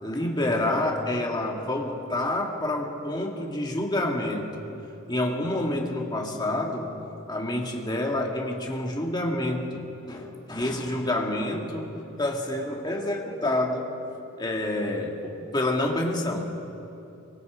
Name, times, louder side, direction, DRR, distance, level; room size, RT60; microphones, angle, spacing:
voice 1, 0.0-4.5 5.1-6.9 7.3-11.9 12.2-13.9 14.4-16.6, left 1 dB, 20° left, 1 dB, 2.2 m, -28 dB
24.0 x 22.0 x 5.1 m, 2.8 s
head